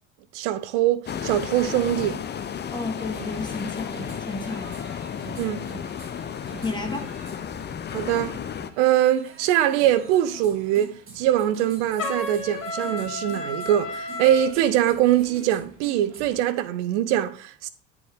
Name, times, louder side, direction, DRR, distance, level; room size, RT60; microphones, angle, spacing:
voice 1, 0.3-2.2 5.4-5.7 7.9-8.4 8.8-17.7, right 12 dB, 65° right, 0.8 m, -23 dB
sound 1, 1.1-8.7, left 8 dB, 30° left, 0.8 m, -33 dB
voice 2, 2.7-4.8 6.6-7.1, left 3 dB, 10° left, 1.7 m, -32 dB
sound 2, 2.9-16.4, right 3 dB, 35° right, 2.6 m, -45 dB
Trumpet, 12.0-14.5, left 2 dB, 90° left, 1.3 m, -32 dB
9.2 x 4.7 x 3.5 m
hypercardioid pair, 65°, 37 cm